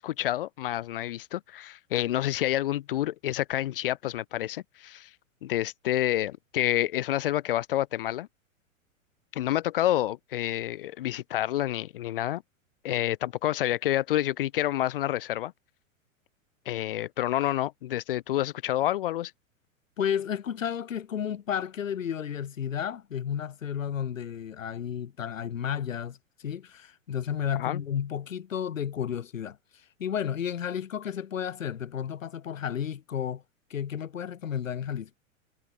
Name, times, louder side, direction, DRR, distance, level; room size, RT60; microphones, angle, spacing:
voice 1, 0.0-5.1 5.4-8.3 9.3-12.4 12.8-15.5 16.7-19.3 27.6-27.8, left 13 dB, 45° left, 0.4 m, -28 dB
voice 2, 20.0-29.6 30.0-33.4 33.7-35.1, left 8 dB, 70° left, 1.2 m, -32 dB
figure-of-eight pair, 100°, 41 cm